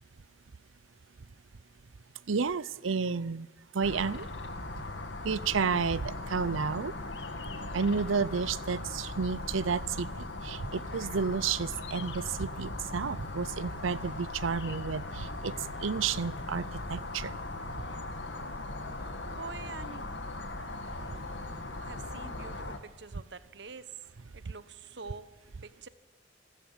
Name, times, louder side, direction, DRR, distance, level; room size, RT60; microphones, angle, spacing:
voice 1, 2.3-3.5 3.7-4.3 5.2-6.9 7.7-15.5 15.8-17.3, right 5 dB, 90° right, 19 dB, 0.7 m, -31 dB
sound 1, 3.8-22.8, left 2 dB, 65° left, 1.9 m, -39 dB
voice 2, 19.2-20.1 21.8-23.9 24.3-25.3 25.6-25.9, right 4 dB, 60° right, 13 dB, 1.1 m, -45 dB
28.0 x 13.0 x 8.8 m, 1.2 s
head